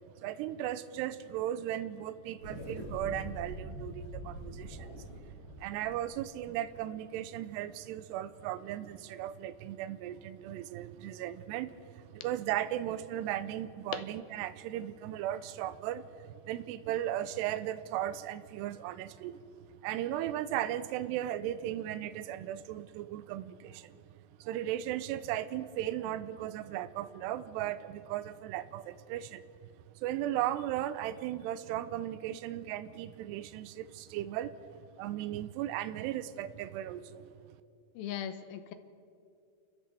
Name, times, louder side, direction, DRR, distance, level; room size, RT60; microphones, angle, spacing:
voice 1, 0.2-5.1 5.6-19.4 19.8-24.0 24.4-29.4 30.0-34.5 35.0-37.3, right 12 dB, 80° right, 2.7 m, -36 dB
sound 1, 2.4-7.1, equal, 20° left, 4.6 m, -44 dB
voice 2, 37.9-38.7, left 9 dB, 75° left, 2.3 m, -38 dB
29.0 x 14.0 x 6.8 m
omnidirectional pair, 5.0 m